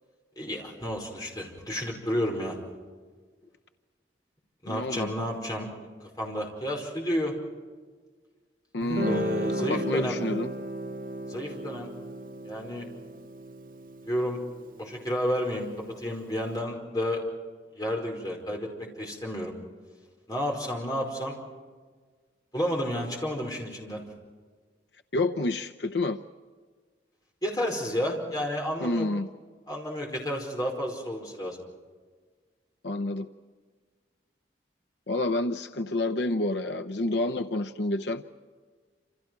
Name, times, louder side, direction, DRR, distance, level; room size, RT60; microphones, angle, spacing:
voice 1, 0.3-2.6 4.6-5.7 6.2-7.3 9.0-10.2 11.3-11.9 12.4-12.9 14.1-14.4 14.8-15.7 16.0-17.2 17.7-19.5 20.3-21.4 22.5-24.0 27.4-29.1 29.7-31.6, equal, 20° left, 0 dB, 5.0 m, -31 dB
voice 2, 4.7-5.1 8.7-9.3 9.6-10.5 25.1-26.2 28.8-29.3 32.8-33.3 35.1-38.2, left 2 dB, 80° left, 7 dB, 0.8 m, -29 dB
Guitar, 8.8-16.0, right 1 dB, 50° right, 1.0 m, -35 dB
28.0 x 28.0 x 4.7 m, 1.5 s
head